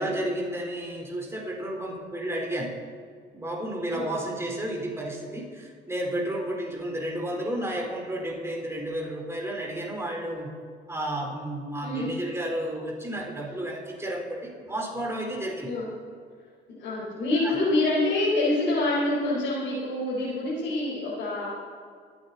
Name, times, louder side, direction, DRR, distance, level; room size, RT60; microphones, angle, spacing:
voice 1, 0.0-2.7 3.3-10.5 10.9-15.7 17.4-17.6, right 1 dB, 15° right, -1 dB, 4.2 m, -32 dB
voice 2, 16.8-21.5, left 2 dB, 90° left, -8 dB, 4.6 m, -26 dB
24.5 x 9.1 x 4.2 m, 2.1 s
cardioid pair, 90°, 20 cm